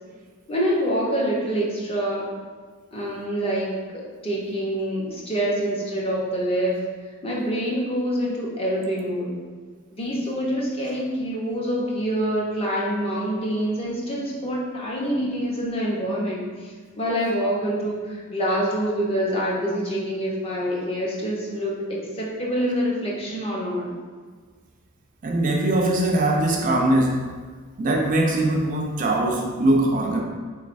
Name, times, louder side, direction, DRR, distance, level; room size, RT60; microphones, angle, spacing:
voice 1, 0.5-2.3 2.9-6.8 7.2-9.3 9.9-23.9, equal, 25° left, -4 dB, 0.6 m, -26 dB
voice 2, 25.2-27.2 27.8-30.2, right 1 dB, 40° right, 0 dB, 0.4 m, -21 dB
3.7 x 3.1 x 2.5 m, 1.5 s
head